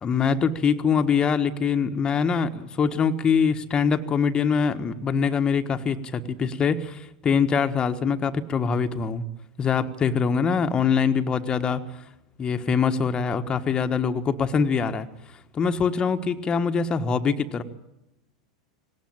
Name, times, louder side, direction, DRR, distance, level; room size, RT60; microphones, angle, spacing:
voice 1, 0.0-9.2 9.6-11.8 12.4-15.1 15.5-17.6, left 6 dB, 25° left, 7 dB, 1.4 m, -23 dB
19.0 x 18.0 x 8.9 m, 0.88 s
hypercardioid pair, 85°, 3 cm